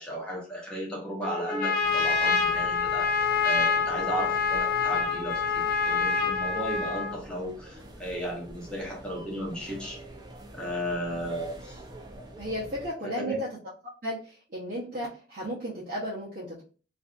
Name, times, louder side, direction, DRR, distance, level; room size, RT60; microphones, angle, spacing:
voice 1, 0.0-10.0 10.5-11.8 13.0-13.4, equal, 5° left, -3 dB, 0.7 m, -35 dB
Trumpet, 1.2-7.2, left 5 dB, 50° left, 0.5 m, -26 dB
sound 1, 1.8-12.9, right 1 dB, 20° right, 0.4 m, -46 dB
voice 2, 12.4-13.5 14.0-16.6, equal, 50° right, -9 dB, 0.7 m, -34 dB
2.6 x 2.5 x 2.3 m, 0.38 s
head